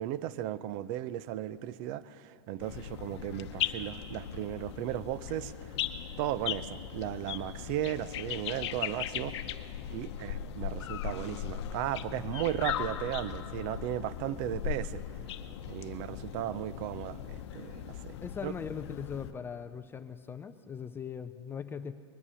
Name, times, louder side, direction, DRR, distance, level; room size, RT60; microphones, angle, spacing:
voice 1, 0.0-5.7 6.2-9.4 9.9-15.0 15.7-18.1 18.4-18.5, right 12 dB, 45° right, 17 dB, 0.6 m, -36 dB
sound 1, 2.6-19.3, left 10 dB, 65° left, 0.8 m, -38 dB
voice 2, 18.2-21.9, left 7 dB, 15° left, 10 dB, 0.4 m, -40 dB
21.0 x 9.8 x 7.0 m, 2.2 s
hypercardioid pair, 125°, 15 cm